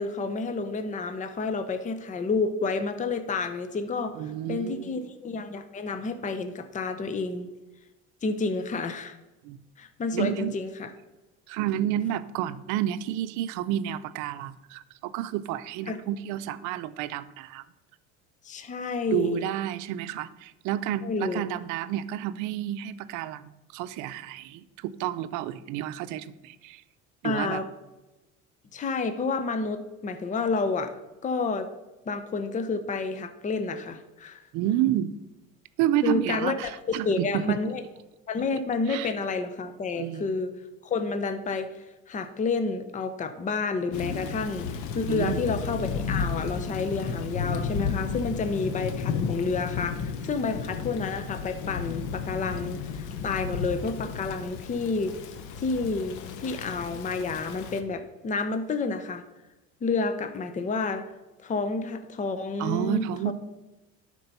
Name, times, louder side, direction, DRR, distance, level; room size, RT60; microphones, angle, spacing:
voice 1, 0.0-7.5 8.2-9.2 9.8-10.9 15.9-16.0 18.4-19.4 21.0-21.4 27.2-27.7 28.7-30.9 31.2-31.7 32.1-34.4 36.0-36.6 36.9-37.8 38.3-40.5 40.8-59.2 59.8-61.1 61.4-63.3, left 4 dB, 25° left, 9 dB, 0.7 m, -30 dB
voice 2, 4.2-5.0 9.4-9.6 10.1-10.6 11.5-17.6 19.1-26.8 27.2-27.6 34.5-35.2 35.8-37.6 38.9-39.1 40.0-40.3 45.1-45.4 62.6-63.3, right 12 dB, 75° right, 14 dB, 0.6 m, -30 dB
Thunder / Rain, 43.9-57.8, left 6 dB, 75° left, 1.0 m, -33 dB
11.5 x 4.5 x 5.5 m, 1.0 s
cardioid pair, 115°, 30 cm